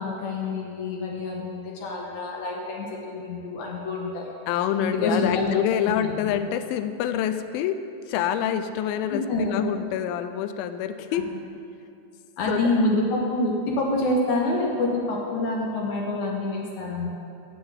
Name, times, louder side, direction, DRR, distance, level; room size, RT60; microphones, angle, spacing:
voice 1, 0.0-4.3 4.8-5.5 5.9-6.3 9.1-9.5 11.1-11.2 12.4-17.1, left 2 dB, 65° left, -1 dB, 2.2 m, -27 dB
voice 2, 4.5-7.8 8.1-11.3 12.5-12.8, left 10 dB, 80° left, 10 dB, 2.3 m, -26 dB
9.8 x 6.8 x 8.1 m, 2.6 s
omnidirectional pair, 4.2 m